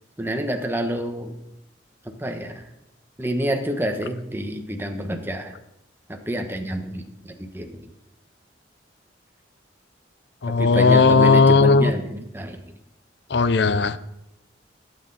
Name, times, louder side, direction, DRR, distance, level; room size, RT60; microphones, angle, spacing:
voice 1, 0.2-1.3 2.0-2.6 3.2-5.5 6.1-7.8 10.5-12.6, equal, 10° right, 4 dB, 1.2 m, -28 dB
voice 2, 10.4-11.9 13.3-14.0, left 4 dB, 65° left, 14 dB, 0.6 m, -16 dB
16.5 x 8.8 x 4.2 m, 0.86 s
head